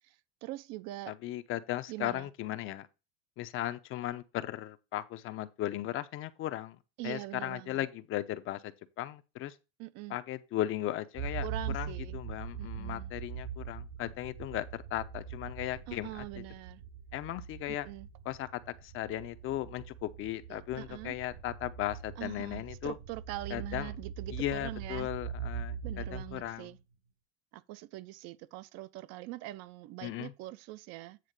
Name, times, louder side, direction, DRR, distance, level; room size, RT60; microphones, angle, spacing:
voice 1, 0.4-1.1 1.9-2.3 7.0-7.8 9.8-10.2 11.4-12.2 12.6-13.1 15.9-16.8 17.7-18.1 20.5-21.1 22.2-25.1 25.8-26.8 27.5-31.2, right 17 dB, 55° right, 0.6 m, -43 dB
voice 2, 1.1-2.9 3.4-6.8 7.0-9.5 10.1-11.5 11.7-16.4 17.1-17.9 18.2-23.0 23.5-24.0 24.3-26.7 30.0-30.3, left 14 dB, 40° left, 0.7 m, -37 dB
sound 1, 11.1-26.8, right 7 dB, 85° right, 3.0 m, -42 dB
9.2 x 3.6 x 6.6 m
supercardioid pair, 140°, 32 cm